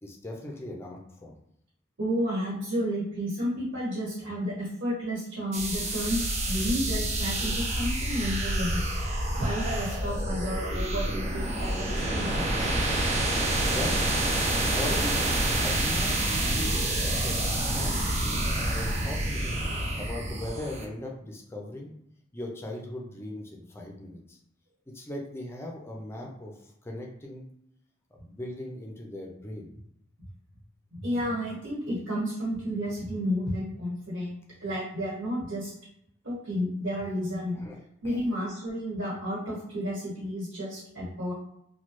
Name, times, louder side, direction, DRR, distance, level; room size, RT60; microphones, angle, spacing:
voice 1, 0.0-1.3 13.2-13.3 13.7-14.0 14.5-17.9 18.2-21.9 22.3-24.4 24.9-27.5 28.1-29.7 37.6-37.8 38.0-38.2, left 1 dB, 15° left, 0 dB, 0.5 m, -39 dB
voice 2, 2.0-12.8 30.9-34.4 34.6-35.7 36.2-37.6 38.0-41.3, equal, 85° right, -8 dB, 1.4 m, -31 dB
sound 1, 5.5-20.8, right 1 dB, 35° right, 0.5 m, -28 dB
3.1 x 2.2 x 3.0 m, 0.77 s
head